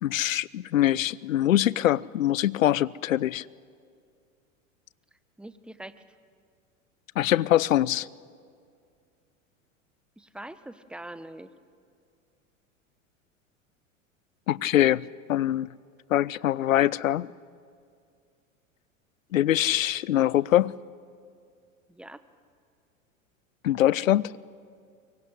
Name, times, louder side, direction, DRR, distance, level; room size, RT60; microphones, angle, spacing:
voice 1, 0.0-3.4 7.2-8.1 14.5-15.7 16.1-17.3 19.3-20.7 23.6-24.3, left 13 dB, 80° left, 0.6 m, -23 dB
voice 2, 5.4-5.9 10.2-11.5 21.9-22.2, right 1 dB, 5° right, 1.0 m, -43 dB
23.5 x 23.0 x 9.8 m
hypercardioid pair, 85°, 39 cm